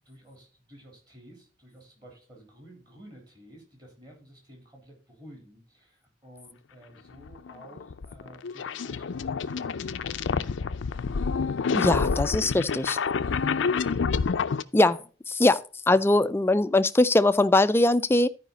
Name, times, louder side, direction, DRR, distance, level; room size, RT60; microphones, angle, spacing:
voice 1, 0.0-11.5 12.4-12.5 12.9-13.2 13.6-14.4 14.8-15.1 15.9-16.0, right 1 dB, 20° right, 3.7 m, -52 dB
sound 1, 7.2-14.6, left 5 dB, 90° left, 0.5 m, -28 dB
voice 2, 11.7-13.0 14.7-15.0 15.4-18.3, left 2 dB, 15° left, 0.3 m, -21 dB
12.5 x 5.0 x 4.0 m
head